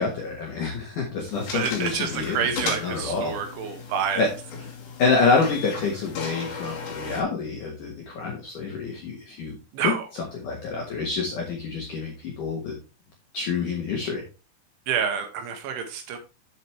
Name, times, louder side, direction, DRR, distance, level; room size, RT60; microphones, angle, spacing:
voice 1, 0.0-3.3 4.2-4.3 5.0-9.9 10.3-12.8 13.3-14.2, left 4 dB, 75° left, 0 dB, 1.9 m, -27 dB
sound 1, 1.3-7.2, left 5 dB, 50° left, 2.8 m, -36 dB
voice 2, 1.5-4.3 9.7-10.0 14.9-16.2, right 7 dB, 75° right, 7 dB, 3.1 m, -28 dB
8.1 x 7.4 x 3.3 m, 0.30 s
omnidirectional pair, 6.0 m